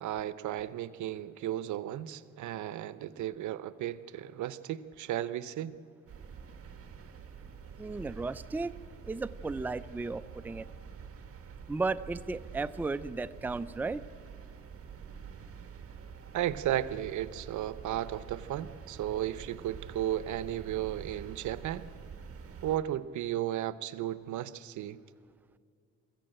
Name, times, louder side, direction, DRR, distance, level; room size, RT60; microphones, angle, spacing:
voice 1, 0.0-5.8 16.3-21.8 22.6-25.0, right 12 dB, 75° right, 15 dB, 0.8 m, -34 dB
sound 1, 6.1-22.8, right 6 dB, 50° right, 1.9 m, -47 dB
voice 2, 7.8-8.7 9.0-10.7 11.7-14.0, right 3 dB, 5° right, 14 dB, 0.4 m, -34 dB
22.0 x 14.5 x 8.9 m, 2.2 s
cardioid pair, 90°, 30 cm